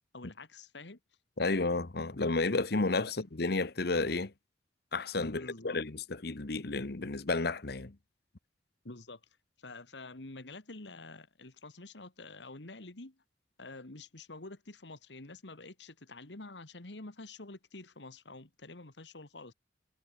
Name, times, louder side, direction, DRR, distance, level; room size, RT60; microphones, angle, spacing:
voice 1, 0.1-1.0 5.2-5.8 8.8-9.2 9.6-13.2 13.6-19.5, left 2 dB, 85° left, 2.0 m, -47 dB
voice 2, 1.4-4.3 4.9-5.9 6.2-7.9, left 3 dB, 65° left, 1.2 m, -31 dB
head